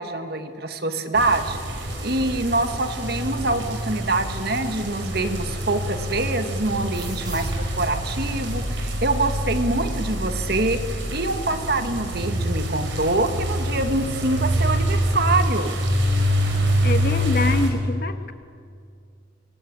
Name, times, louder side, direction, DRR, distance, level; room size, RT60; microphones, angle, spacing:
voice 1, 0.0-10.8 11.1-15.7, right 2 dB, 55° right, 8 dB, 1.9 m, -25 dB
sound 1, 1.1-17.7, equal, 85° right, 5.2 m, -26 dB
sound 2, 6.9-10.1, equal, 20° right, 6.3 m, -39 dB
voice 2, 16.8-18.3, left 1 dB, 55° left, 8 dB, 1.6 m, -25 dB
24.5 x 24.0 x 8.7 m, 2.2 s
head